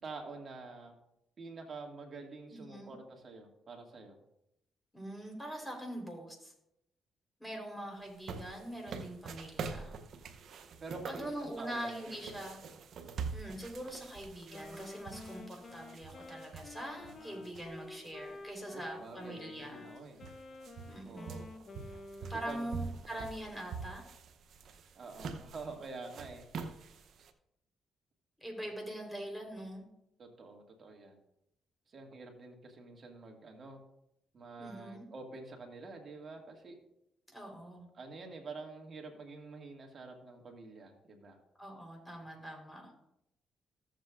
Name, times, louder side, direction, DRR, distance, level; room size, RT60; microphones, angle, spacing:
voice 1, 0.0-0.9 1.4-4.2 10.8-12.4 16.9-17.5 18.7-20.2 21.1-21.5 22.2-23.3 25.0-26.4 30.2-31.2 31.9-33.8 34.3-36.8 37.9-41.4, right 3 dB, 50° right, 2 dB, 2.1 m, -48 dB
voice 2, 2.5-2.9 4.9-6.5 7.4-10.0 11.1-12.6 13.3-19.9 20.9-21.4 22.3-24.0 28.4-29.8 34.6-35.0 37.3-37.9 41.6-42.9, right 1 dB, 10° left, 1 dB, 3.9 m, -43 dB
sound 1, 8.0-18.1 18.5-18.6 19.5-19.6 19.9-27.3, right 5 dB, 70° right, 0.7 m, -45 dB
Wind instrument woodwind instrument, 14.5-22.7, left 2 dB, 45° left, 0.8 m, -50 dB
14.5 x 7.6 x 2.5 m, 0.82 s
supercardioid pair, 60°, 0 cm